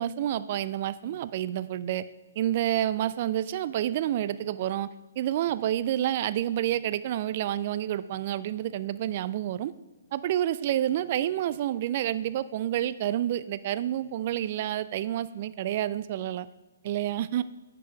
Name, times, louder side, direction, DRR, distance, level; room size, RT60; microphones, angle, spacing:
voice 1, 0.0-2.0 2.4-4.9 5.2-9.7 10.1-16.5 16.8-17.4, right 12 dB, 45° right, 15 dB, 0.4 m, -29 dB
9.9 x 6.8 x 3.4 m, 1.2 s
figure-of-eight pair, 130°, 0 cm